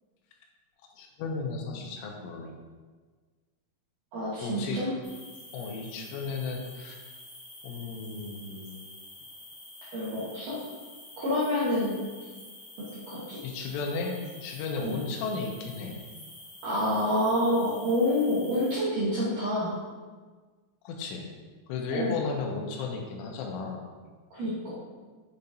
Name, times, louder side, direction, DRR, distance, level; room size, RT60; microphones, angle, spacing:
voice 1, 1.0-2.6 4.4-4.9 5.5-7.0 7.6-8.7 13.4-16.0 20.8-21.2 21.7-23.8, left 4 dB, 90° left, 1 dB, 3.3 m, -34 dB
voice 2, 4.1-4.9 9.9-10.6 11.2-12.0 12.8-13.4 14.8-15.0 16.6-19.8 21.9-22.2 24.3-24.7, left 1 dB, 75° right, -9 dB, 1.9 m, -28 dB
sound 1, 5.0-18.8, left 1 dB, 50° left, 1.7 m, -48 dB
6.8 x 6.8 x 2.6 m, 1.4 s
omnidirectional pair, 5.6 m